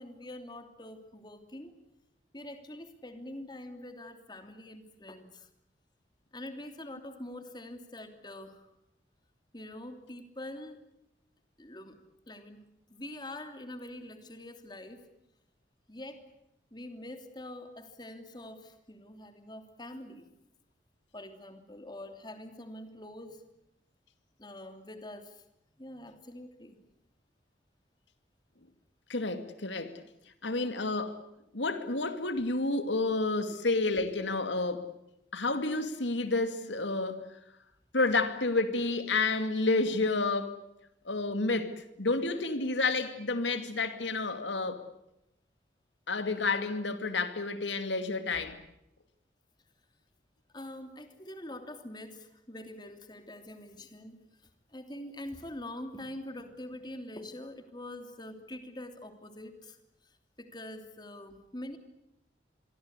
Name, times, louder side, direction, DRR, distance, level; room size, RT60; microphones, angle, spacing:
voice 1, 0.0-1.8 2.3-5.5 6.3-8.7 9.5-10.8 11.6-12.0 12.3-12.6 12.9-15.0 15.9-16.2 16.7-20.3 21.1-23.4 24.4-25.4 25.8-26.8 35.3-35.4 50.5-59.8 60.4-61.8, left 1 dB, 25° left, 3.0 m, -45 dB
voice 2, 29.1-30.0 30.4-31.2 31.5-34.8 35.3-37.3 37.9-40.6 41.0-44.8 46.1-48.6, left 3 dB, 90° left, 2.5 m, -30 dB
27.0 x 23.0 x 8.2 m
head